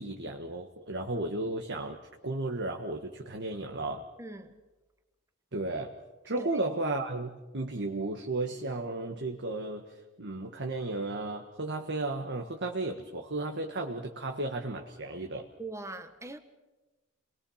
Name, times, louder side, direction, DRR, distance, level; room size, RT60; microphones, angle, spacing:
voice 1, 0.0-2.0 2.2-4.1 5.5-5.9 6.2-9.8 10.2-15.5, right 2 dB, 55° right, 1.7 m, -34 dB
voice 2, 4.2-4.5 6.4-6.5 15.6-16.4, right 2 dB, 15° right, 1.5 m, -41 dB
30.0 x 21.5 x 5.8 m
head